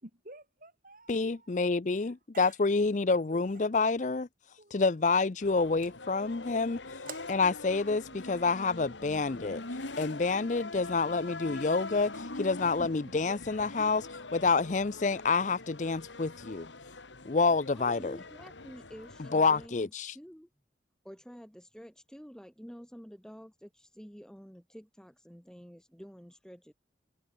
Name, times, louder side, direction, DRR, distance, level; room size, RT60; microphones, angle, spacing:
voice 1, 0.0-1.6 1.9-3.7 4.6-5.2 7.1-7.3 8.1-8.2 10.9-11.0 12.5-13.4, right 3 dB, 45° right, 6.6 m, -51 dB
voice 2, 1.1-4.3 4.7-6.8 7.3-9.6 10.0-16.7 17.2-18.2 19.3-20.1, left 4 dB, 40° left, 0.5 m, -28 dB
sound 1, 5.4-19.7, left 2 dB, 85° left, 2.7 m, -43 dB
voice 3, 17.7-20.5 21.0-26.7, equal, 5° left, 2.9 m, -49 dB
head